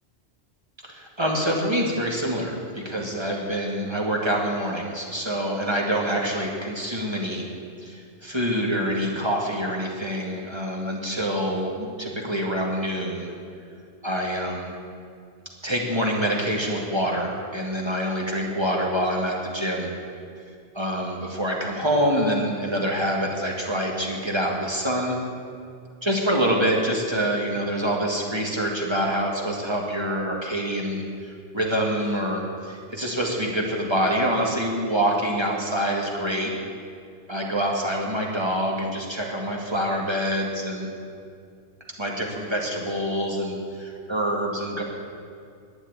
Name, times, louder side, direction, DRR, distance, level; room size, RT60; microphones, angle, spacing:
voice 1, 0.8-7.5 7.8-13.3 14.0-14.7 15.6-19.9 20.7-25.2 26.0-36.5 37.3-40.9 42.0-44.8, equal, 25° right, -1 dB, 2.1 m, -26 dB
11.5 x 9.2 x 9.9 m, 2.3 s
omnidirectional pair, 1.2 m